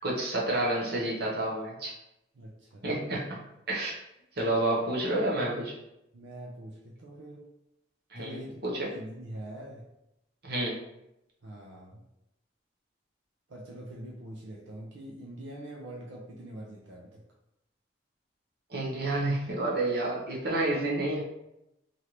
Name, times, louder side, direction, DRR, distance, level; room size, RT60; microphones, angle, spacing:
voice 1, 0.0-1.9 2.8-3.4 3.7-4.0 4.4-5.7 8.1-8.9 10.4-10.8 18.7-21.2, right 2 dB, 55° right, -4 dB, 0.9 m, -29 dB
voice 2, 2.3-2.9 6.1-7.5 8.2-9.9 11.4-12.0 13.5-17.2, right 1 dB, 85° right, -2 dB, 0.5 m, -44 dB
3.2 x 2.6 x 2.9 m, 0.86 s
head